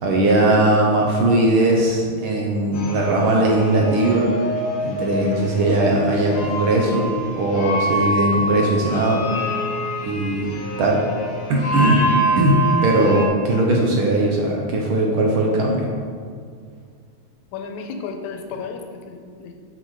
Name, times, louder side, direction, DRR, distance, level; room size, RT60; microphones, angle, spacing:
voice 1, 0.0-4.3 4.8-7.1 7.4-9.2 10.0-10.5 10.8-11.0 11.5-12.1 12.3-15.9, right 1 dB, 65° right, -1 dB, 1.3 m, -19 dB
sound 1, 2.7-13.3, equal, 45° left, 1.2 m, -26 dB
voice 2, 17.5-19.5, left 5 dB, 80° left, 5 dB, 2.1 m, -33 dB
7.4 x 6.7 x 4.8 m, 2.1 s
omnidirectional pair, 3.4 m